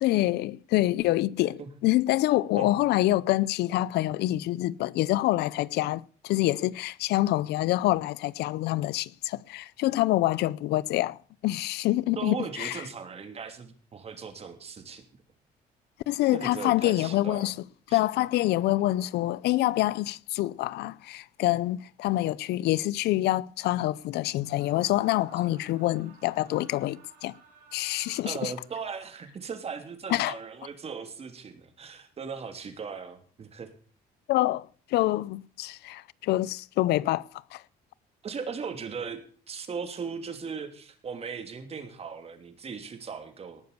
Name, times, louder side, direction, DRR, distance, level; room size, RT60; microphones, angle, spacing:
voice 1, 0.0-12.8 16.1-17.6 17.9-27.3 27.7-28.5 30.1-30.4 34.3-37.6, left 16 dB, 75° left, 0.6 m, -26 dB
voice 2, 12.1-15.0 16.3-17.5 17.9-18.0 28.2-33.7 38.2-39.2 39.5-43.6, right 5 dB, 35° right, 2.9 m, -38 dB
Screaming, 24.3-29.2, right 6 dB, 65° right, 6.6 m, -56 dB
18.5 x 7.0 x 6.7 m
cardioid pair, 110°, 17 cm